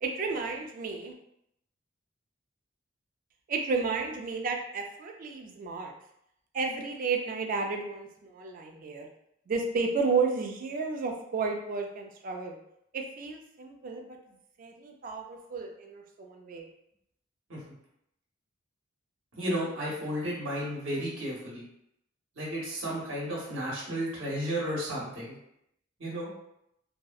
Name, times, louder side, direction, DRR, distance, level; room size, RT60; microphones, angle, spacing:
voice 1, 0.0-1.1 3.5-5.9 6.5-9.1 9.5-12.6 12.9-14.2 14.6-16.7, right 4 dB, 45° right, 3 dB, 0.3 m, -32 dB
voice 2, 19.4-21.6 22.4-25.3 26.0-26.3, equal, 70° right, -5 dB, 0.9 m, -33 dB
2.6 x 2.0 x 2.3 m, 0.77 s
head